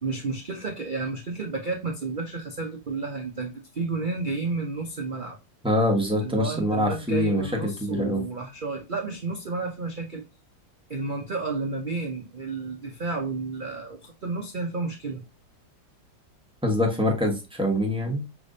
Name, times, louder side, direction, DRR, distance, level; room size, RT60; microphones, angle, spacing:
voice 1, 0.0-5.4 6.2-10.2 10.9-15.2, right 3 dB, 90° right, 2 dB, 0.4 m, -31 dB
voice 2, 5.6-7.4 7.8-8.2 16.6-18.2, left 1 dB, 5° right, -1 dB, 1.0 m, -24 dB
6.0 x 3.3 x 2.6 m, 0.26 s
omnidirectional pair, 2.0 m